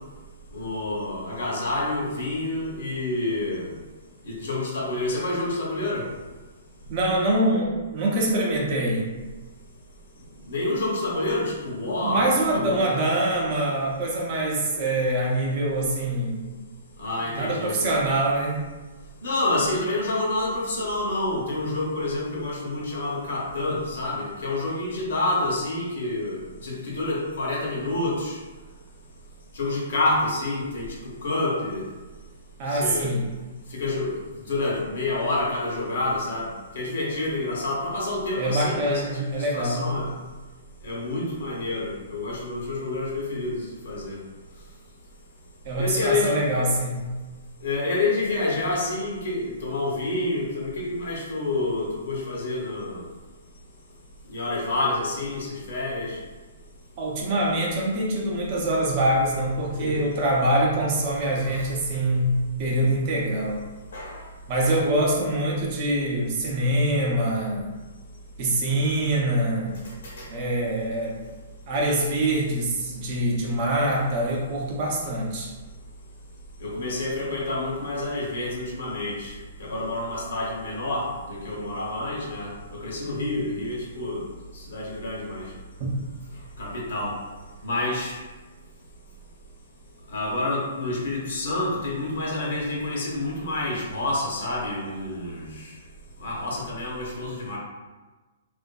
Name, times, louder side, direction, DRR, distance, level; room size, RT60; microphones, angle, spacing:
voice 1, 0.5-3.7 4.2-6.1 10.5-13.1 17.0-17.8 19.2-28.4 29.5-30.9 31.2-31.8 32.7-33.2 33.7-34.2 34.5-40.1 40.8-44.2 45.8-46.5 47.6-53.0 54.3-56.2 59.8-60.1 61.5-61.7 63.9-64.2 64.6-64.7 70.0-70.3 76.6-79.3 79.6-84.2 84.7-85.5 86.6-87.2 87.6-88.2 90.1-95.7 96.2-97.6, left 2 dB, 70° left, -3 dB, 0.9 m, -28 dB
voice 2, 6.9-9.1 12.0-16.4 17.3-18.6 32.6-33.3 38.4-40.0 45.7-47.1 57.0-63.6 64.5-67.7 68.4-69.8 70.3-71.2 71.7-75.5 85.8-85.9, right 1 dB, 35° right, -2 dB, 0.5 m, -24 dB
2.6 x 2.5 x 2.2 m, 1.2 s
hypercardioid pair, 165°, 0 cm